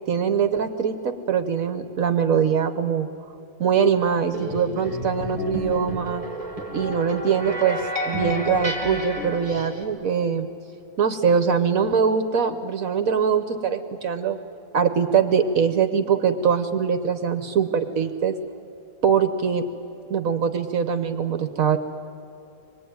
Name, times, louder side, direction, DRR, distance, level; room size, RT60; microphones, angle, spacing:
voice 1, 0.1-3.1 3.6-6.2 6.7-7.8 8.1-10.5 11.0-14.4 14.7-18.4 19.0-19.6 20.1-21.8, right 7 dB, 65° right, 9 dB, 1.3 m, -22 dB
sound 1, 4.3-9.8, equal, 20° right, 2.5 m, -31 dB
25.0 x 21.0 x 9.4 m, 2.7 s
omnidirectional pair, 1.6 m